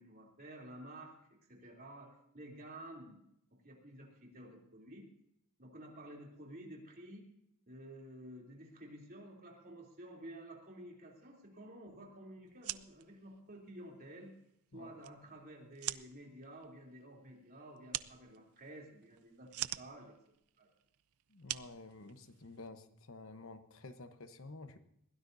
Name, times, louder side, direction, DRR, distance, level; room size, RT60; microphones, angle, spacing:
voice 1, 0.0-3.2 3.5-5.1 5.6-7.3 7.7-14.3 14.7-20.1 20.6-20.7, right 1 dB, 40° right, 0 dB, 3.3 m, -52 dB
sound 1, 12.5-22.7, right 14 dB, 85° right, 0.5 m, -46 dB
voice 2, 21.4-22.8 23.1-24.8, left 2 dB, 65° left, 8 dB, 1.1 m, -50 dB
22.0 x 16.5 x 2.7 m, 0.76 s
head